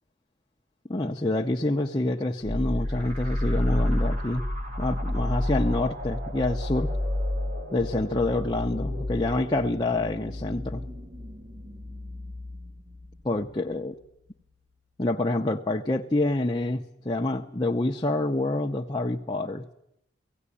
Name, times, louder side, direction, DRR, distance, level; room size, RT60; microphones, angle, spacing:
voice 1, 0.9-4.4 4.8-6.9 7.7-10.8 13.2-14.0 15.0-19.6, left 2 dB, 20° left, 2 dB, 0.7 m, -27 dB
sound 1, 2.4-13.8, left 1 dB, 40° right, 1.8 m, -30 dB
17.5 x 16.5 x 9.8 m, 0.81 s
head